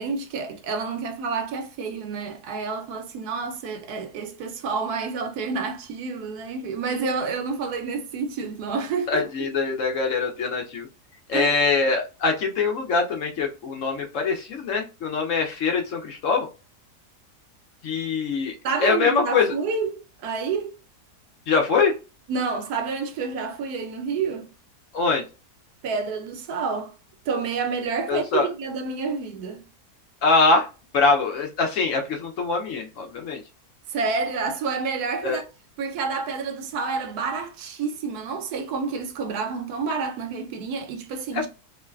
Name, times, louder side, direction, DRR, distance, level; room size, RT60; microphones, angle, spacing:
voice 1, 0.0-9.2 11.3-11.5 18.6-20.8 22.3-24.5 25.8-26.9 27.3-29.6 33.9-35.4 35.8-41.5, right 5 dB, 75° right, 1.1 m, -29 dB
voice 2, 9.1-10.9 11.3-16.5 17.8-18.5 18.8-19.5 21.5-21.9 24.9-25.2 28.1-28.5 30.2-30.7 30.9-33.4 35.2-35.4 41.3-41.4, left 4 dB, 65° left, 0.9 m, -23 dB
3.1 x 2.1 x 2.2 m
omnidirectional pair, 1.7 m